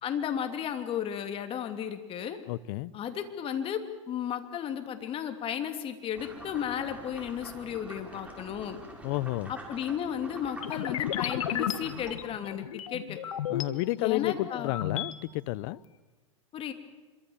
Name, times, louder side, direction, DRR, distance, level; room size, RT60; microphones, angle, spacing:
voice 1, 0.0-2.4 2.9-8.8 9.5-13.2 14.0-14.7 16.5-16.7, left 9 dB, 35° left, 7 dB, 2.9 m, -34 dB
voice 2, 2.5-2.9 9.0-9.5 13.5-15.8, left 19 dB, 50° left, 20 dB, 0.8 m, -31 dB
sound 1, 6.1-12.2, right 1 dB, 10° right, 5.6 m, -46 dB
sound 2, 10.6-13.6 14.1-15.1, left 10 dB, 75° left, 1.8 m, -34 dB
26.0 x 23.5 x 7.2 m, 1.2 s
hypercardioid pair, 110°, 17 cm